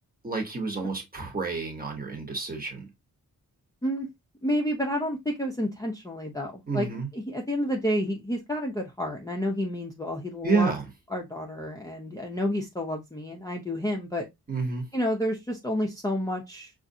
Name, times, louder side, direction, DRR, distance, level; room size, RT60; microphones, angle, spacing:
voice 1, 0.2-2.9 6.7-7.1 10.4-10.9 14.5-14.8, right 4 dB, 25° right, 1.1 m, -29 dB
voice 2, 4.4-6.9 7.1-10.7 11.1-14.2 14.9-16.7, equal, 10° left, 0.5 m, -30 dB
5.7 x 2.5 x 2.6 m
wide cardioid pair, 165°, 37 cm